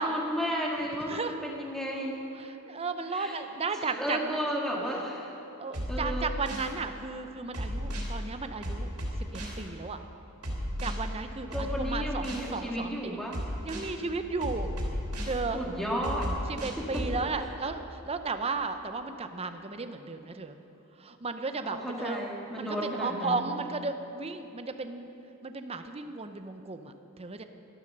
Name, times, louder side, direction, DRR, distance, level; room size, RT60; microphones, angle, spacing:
voice 1, 0.0-2.2 3.1-3.3 3.8-5.3 5.9-6.3 11.5-13.4 15.5-16.3 16.8-17.1 21.7-23.4, equal, ahead, -2 dB, 1.8 m, -33 dB
voice 2, 0.9-1.4 2.3-4.4 5.6-8.9 9.3-10.0 10.8-13.2 13.6-14.7 15.2-15.6 16.5-20.6 21.0-22.2 22.6-25.1 25.4-27.4, right 4 dB, 25° right, 8 dB, 0.7 m, -34 dB
sound 1, 5.7-6.7 7.5-8.1 8.6-9.6 10.4-10.9 11.5-12.5 13.3-13.9 14.4-15.4 16.0-17.1, equal, 85° right, 3.2 m, -34 dB
13.0 x 11.5 x 6.7 m, 2.9 s
head